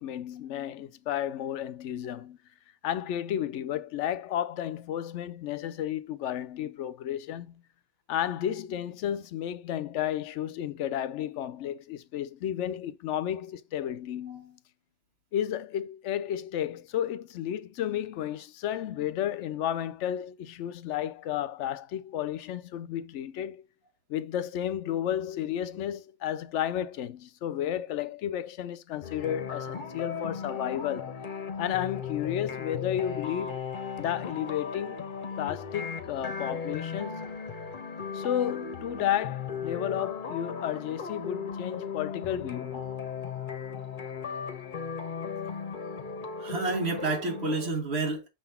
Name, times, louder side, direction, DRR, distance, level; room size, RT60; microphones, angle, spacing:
voice 1, 0.0-2.4 2.8-7.6 8.1-14.6 15.3-23.6 24.1-31.2 31.6-33.7 34.0-35.0 35.4-37.2 38.1-42.8, left 10 dB, 85° left, 0.9 m, -32 dB
sound 1, 29.0-47.7, left 6 dB, 45° left, 1.1 m, -37 dB
voice 2, 46.4-48.3, right 3 dB, 65° right, 1.7 m, -31 dB
6.3 x 3.9 x 4.3 m
omnidirectional pair, 1.2 m